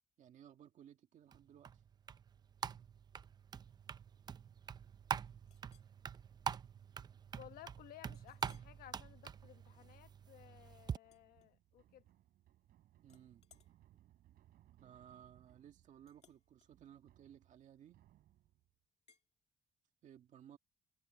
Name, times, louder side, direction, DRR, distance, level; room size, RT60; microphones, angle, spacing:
voice 1, 0.2-1.8 13.0-13.4 14.8-18.0 20.0-20.6, right 10 dB, 55° right, 1.8 m, -59 dB
sound 1, 1.3-11.0, right 7 dB, 25° right, 0.5 m, -45 dB
Chink clink, 5.5-5.9 6.5-6.7 7.1-7.2 8.1-8.8 9.3-9.6 11.0-12.0 12.3-12.7 13.0-18.2 19.1-19.3, left 8 dB, 45° left, 2.0 m, -72 dB
voice 2, 7.3-12.0, left 13 dB, 85° left, 1.4 m, -58 dB
sound 2, 11.0-18.7, right 13 dB, 80° right, 7.6 m, -68 dB
cardioid pair, 170°, 15 cm